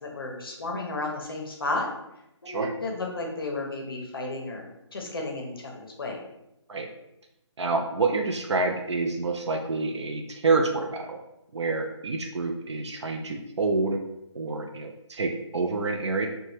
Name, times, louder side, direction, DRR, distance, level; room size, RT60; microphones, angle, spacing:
voice 1, 0.0-1.9 2.4-6.2, left 2 dB, 50° left, 0 dB, 0.5 m, -33 dB
voice 2, 7.6-11.2 11.5-14.0 14.3-16.3, right 3 dB, 65° right, 4 dB, 0.4 m, -27 dB
2.8 x 2.2 x 3.1 m, 0.88 s
hypercardioid pair, 170°, 16 cm